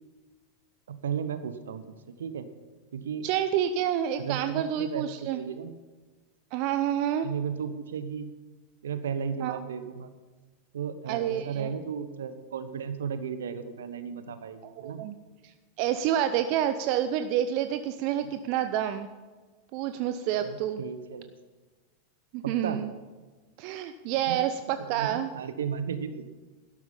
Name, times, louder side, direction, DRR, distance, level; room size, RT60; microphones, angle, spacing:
voice 1, 0.9-2.5 2.9-3.3 4.2-5.7 7.2-8.3 8.8-10.1 10.7-15.1 20.4-21.3 22.4-22.8 24.3-24.4 24.8-26.2, right 7 dB, 70° right, 11 dB, 1.1 m, -35 dB
voice 2, 3.2-5.4 6.5-7.3 9.4-9.6 11.1-11.7 14.8-15.1 15.4-19.1 19.7-20.8 22.3-22.9 23.6-25.3, right 10 dB, 50° right, 9 dB, 0.7 m, -28 dB
12.0 x 12.0 x 5.6 m, 1.3 s
figure-of-eight pair, 90°, 0 cm